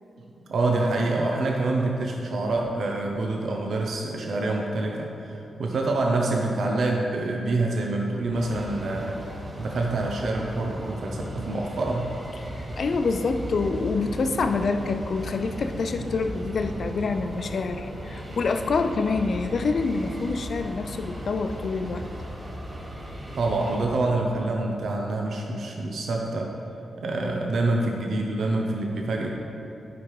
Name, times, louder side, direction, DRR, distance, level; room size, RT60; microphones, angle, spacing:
voice 1, 0.2-9.2 9.6-12.2 23.3-26.5 27.0-29.3, right 2 dB, 70° right, 0 dB, 0.8 m, -26 dB
sound 1, 8.2-23.8, equal, 30° right, 1.7 m, -39 dB
sound 2, 12.3-24.8, equal, 10° left, 1.2 m, -41 dB
voice 2, 12.5-22.1, left 4 dB, 60° left, 7 dB, 0.5 m, -26 dB
11.0 x 5.0 x 4.7 m, 3.0 s
cardioid pair, 100°, 0 cm